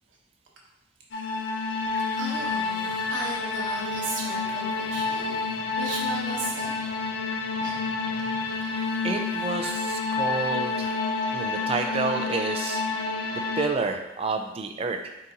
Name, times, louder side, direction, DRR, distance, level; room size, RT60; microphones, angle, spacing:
sound 1, 1.1-13.7, left 4 dB, 70° left, 0.4 m, -29 dB
voice 1, 2.2-6.8 7.6-7.8, right 3 dB, 90° right, -2 dB, 0.9 m, -36 dB
voice 2, 9.0-11.0 11.3-12.8 13.3-15.3, right 4 dB, 30° right, 4 dB, 0.4 m, -29 dB
3.9 x 3.7 x 2.8 m, 0.92 s
head